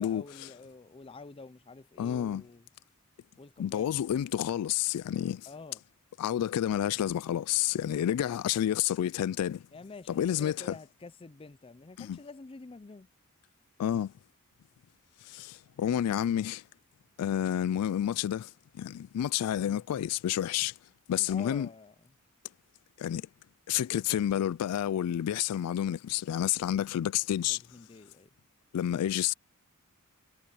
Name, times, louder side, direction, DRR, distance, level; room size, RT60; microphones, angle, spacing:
voice 1, 0.0-2.7 3.4-3.9 5.5-5.8 9.7-13.1 19.6-19.8 21.1-21.9 27.5-28.3, left 3 dB, 25° left, 0.4 m, -48 dB
voice 2, 2.0-2.4 3.6-5.5 6.2-9.6 10.1-10.8 12.0-12.2 13.8-14.1 15.3-16.6 17.2-20.7 21.1-21.7 23.0-23.3 23.7-27.6 28.7-29.3, left 10 dB, 85° left, 0.3 m, -30 dB
head